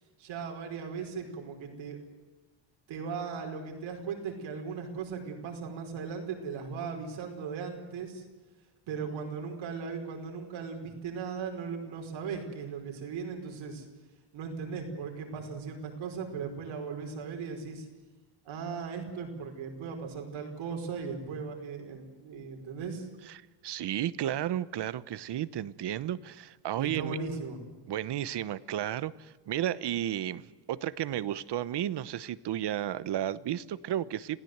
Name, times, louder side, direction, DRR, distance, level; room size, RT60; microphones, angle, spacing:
voice 1, 0.2-2.0 2.9-8.2 8.9-13.9 14.3-17.9 18.4-23.1 26.7-27.6, right 5 dB, 90° right, 3 dB, 5.1 m, -38 dB
voice 2, 23.3-27.2 27.9-34.4, right 11 dB, 60° right, 17 dB, 1.0 m, -33 dB
27.0 x 16.5 x 8.0 m, 1.2 s
cardioid pair, 115°, 45 cm